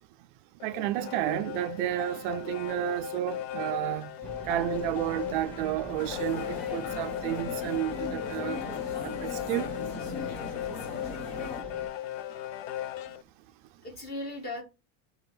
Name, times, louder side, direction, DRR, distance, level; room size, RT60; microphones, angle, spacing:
sound 1, 0.6-13.2, left 12 dB, 65° left, 0.5 m, -37 dB
voice 1, 0.6-4.1 4.4-8.6 9.0-9.7, right 14 dB, 50° right, 0.5 m, -31 dB
sound 2, 4.2-11.9, right 2 dB, 5° left, 1.2 m, -44 dB
sound 3, 6.0-11.6, left 5 dB, 50° left, 1.6 m, -39 dB
voice 2, 11.2-11.7 13.8-14.6, left 2 dB, 30° left, 2.6 m, -39 dB
7.2 x 3.5 x 5.4 m
supercardioid pair, 165°, 33 cm